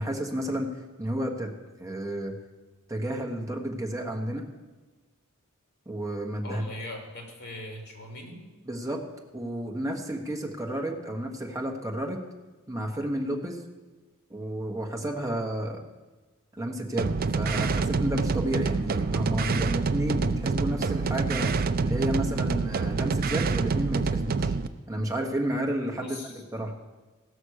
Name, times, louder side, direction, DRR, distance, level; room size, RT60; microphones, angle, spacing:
voice 1, 0.0-1.5 1.8-2.4 2.9-4.5 5.9-6.6 8.7-9.0 9.3-12.2 12.7-13.6 14.3-15.8 16.5-24.5 24.9-26.2 26.5-26.7, right 1 dB, 15° right, 1 dB, 1.4 m, -31 dB
voice 2, 6.4-8.4 26.0-26.4, left 1 dB, 50° left, 1 dB, 2.9 m, -40 dB
sound 1, 17.0-24.7, right 4 dB, 45° right, 0.5 m, -27 dB
16.0 x 6.4 x 6.5 m, 1.3 s
head